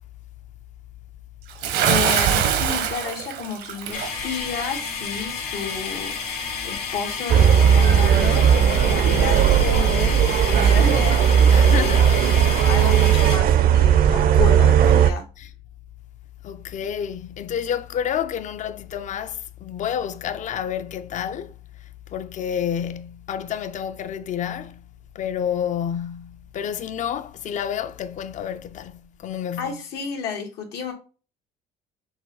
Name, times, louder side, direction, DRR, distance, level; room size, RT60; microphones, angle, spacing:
Bathtub (filling or washing) / Splash splatter, 1.6-4.1, right 8 dB, 80° right, 0.8 m, -23 dB
voice 1, 1.9-11.3 11.6-12.1 12.7-15.2 29.6-30.9, left 6 dB, 80° left, 1.4 m, -31 dB
sound 1, 3.9-13.4, left 5 dB, 65° left, 2.0 m, -31 dB
sound 2, 7.3-15.1, right 8 dB, 60° right, 0.5 m, -16 dB
voice 2, 11.5-12.0 15.4-15.5 16.4-21.6 22.1-24.8 25.1-29.8, left 9 dB, 45° left, 0.4 m, -29 dB
6.0 x 2.2 x 3.8 m
cardioid pair, 110°, 17 cm